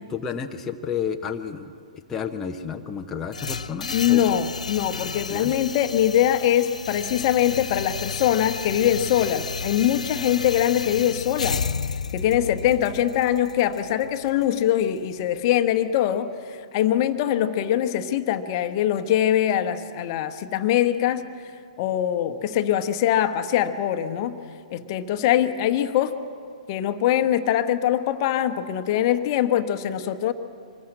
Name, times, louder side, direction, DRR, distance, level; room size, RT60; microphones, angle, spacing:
voice 1, 0.1-4.2 5.3-5.5, left 7 dB, 10° left, 2 dB, 0.9 m, -31 dB
sound 1, 3.3-15.4, left 5 dB, 70° left, 0.6 m, -32 dB
voice 2, 3.9-11.6 12.1-21.3 21.8-24.4 24.7-26.1 26.7-30.3, left 11 dB, 35° left, 9 dB, 1.1 m, -23 dB
25.0 x 20.5 x 7.7 m, 2.3 s
figure-of-eight pair, 115°, 4 cm